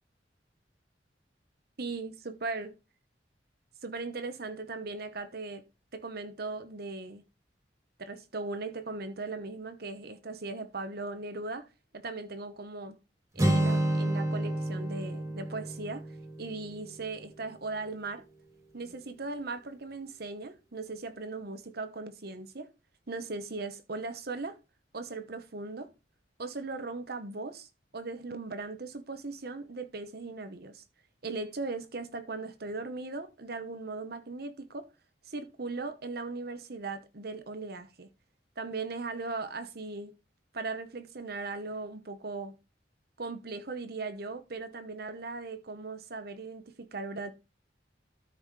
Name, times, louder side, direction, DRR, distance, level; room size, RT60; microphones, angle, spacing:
voice 1, 1.8-2.7 3.8-5.6 5.9-7.2 8.0-11.7 11.9-13.0 13.3-16.0 16.4-18.2 18.7-22.7 23.1-24.6 24.9-25.9 26.4-27.7 27.9-30.8 31.2-34.9 35.3-38.1 38.6-40.1 40.5-42.5 43.2-47.3, right 3 dB, 60° right, 1.1 m, -38 dB
Acoustic guitar, 13.4-17.3, right 1 dB, 15° right, 2.8 m, -30 dB
13.0 x 6.3 x 3.2 m
head